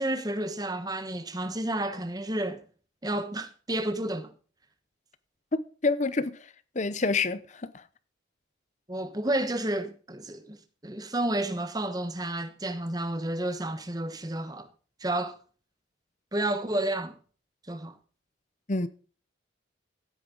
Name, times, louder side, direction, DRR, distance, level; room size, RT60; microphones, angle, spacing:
voice 1, 0.0-2.6 3.0-4.3 8.9-14.7 15.0-15.4 16.3-17.2 17.7-18.0, right 1 dB, 20° right, 1.1 m, -31 dB
voice 2, 5.5-6.4 6.8-7.4 18.7-18.9, left 3 dB, 35° left, 0.7 m, -27 dB
15.5 x 8.7 x 3.9 m
head